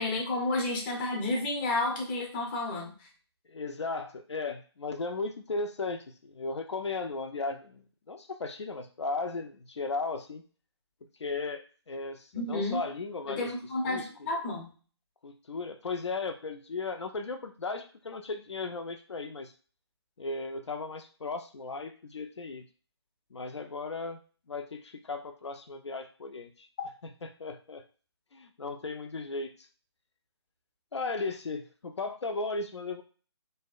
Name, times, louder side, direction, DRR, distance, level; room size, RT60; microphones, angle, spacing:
voice 1, 0.0-2.9 12.3-12.8 13.3-14.7, left 2 dB, 20° left, 0 dB, 0.6 m, -31 dB
voice 2, 3.5-10.4 11.2-13.5 13.8-14.1 15.2-19.5 20.2-22.7 23.3-24.2 24.5-26.7 27.2-27.8 28.3-29.7 30.9-33.0, left 3 dB, 80° left, 5 dB, 0.4 m, -36 dB
2.6 x 2.1 x 2.3 m, 0.39 s
figure-of-eight pair, 150°, 14 cm